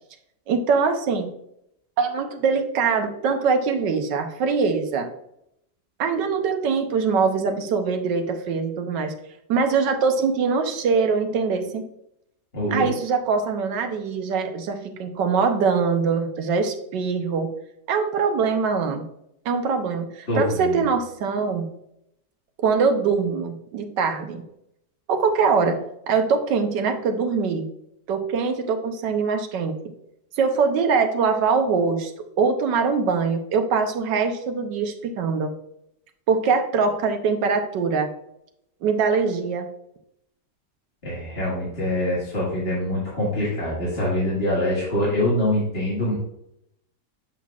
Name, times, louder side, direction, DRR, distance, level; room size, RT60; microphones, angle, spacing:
voice 1, 0.5-1.3 2.0-5.1 6.0-9.1 9.5-11.9 12.7-17.5 17.9-19.0 19.4-21.7 22.6-24.4 25.1-27.7 28.1-29.7 30.4-32.1 32.4-35.5 36.3-38.1 38.8-39.7, right 5 dB, 90° right, 5 dB, 1.5 m, -23 dB
voice 2, 12.5-12.9 20.3-20.8 41.0-46.1, left 1 dB, 35° left, -7 dB, 2.0 m, -24 dB
7.2 x 5.9 x 2.4 m, 0.78 s
omnidirectional pair, 1.8 m